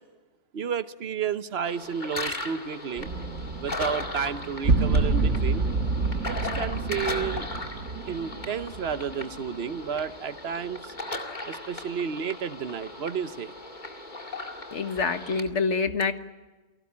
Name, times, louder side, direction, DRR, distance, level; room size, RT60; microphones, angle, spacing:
voice 1, 0.5-3.1 3.6-5.7 6.3-7.5 8.1-10.9 11.4-13.5, right 7 dB, 60° right, 13 dB, 1.2 m, -32 dB
sound 1, 1.6-15.4, left 2 dB, 40° left, 2.4 m, -37 dB
sound 2, 3.0-9.8, right 3 dB, 90° right, 1.8 m, -28 dB
voice 2, 14.7-16.1, left 4 dB, 80° left, 9 dB, 1.8 m, -26 dB
29.0 x 18.5 x 8.6 m, 1.2 s
omnidirectional pair, 1.2 m